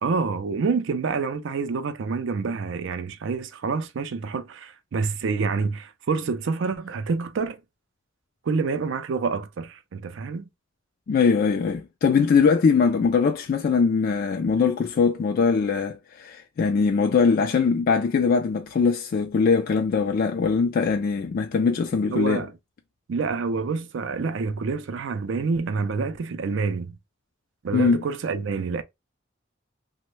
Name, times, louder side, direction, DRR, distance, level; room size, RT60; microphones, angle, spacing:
voice 1, 0.0-7.6 8.5-10.5 22.1-22.5 23.1-27.0 27.6-28.8, right 4 dB, 65° right, 0.4 m, -27 dB
voice 2, 11.1-22.5 27.7-28.0, left 5 dB, 50° left, 0.3 m, -21 dB
3.0 x 2.1 x 3.1 m
head